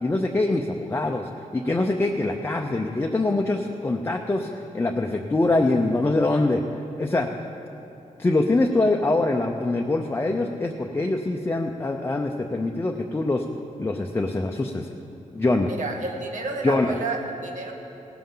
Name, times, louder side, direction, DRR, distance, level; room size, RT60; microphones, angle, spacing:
voice 1, 0.0-6.6 7.0-7.3 8.2-13.4 13.8-14.9 15.3-15.7 16.6-16.9, left 2 dB, 20° left, 1 dB, 0.5 m, -24 dB
voice 2, 15.7-17.7, right 3 dB, 75° right, 1 dB, 1.6 m, -30 dB
18.0 x 12.5 x 3.9 m, 2.9 s
wide cardioid pair, 150°, 13 cm